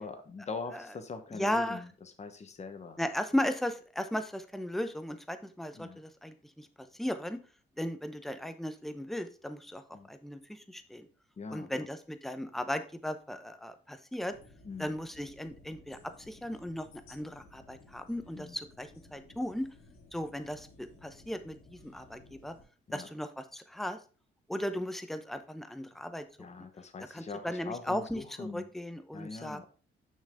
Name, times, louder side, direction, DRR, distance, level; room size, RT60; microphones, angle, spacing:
voice 1, 0.0-1.9 2.2-3.0 5.7-6.0 9.9-10.1 11.4-11.9 14.6-14.9 18.3-18.5 22.9-23.1 26.4-28.7 29.1-29.7, left 4 dB, 35° left, 8 dB, 1.1 m, -42 dB
voice 2, 1.3-1.8 3.0-6.7 6.9-7.4 7.8-9.8 10.1-11.1 11.5-14.3 14.8-19.7 20.1-22.5 22.9-24.0 24.5-26.2 27.1-29.7, left 1 dB, ahead, 9 dB, 0.8 m, -36 dB
sound 1, 14.3-22.6, left 3 dB, 90° left, 3.1 m, -57 dB
6.4 x 6.3 x 3.7 m, 0.37 s
cardioid pair, 90°, 20 cm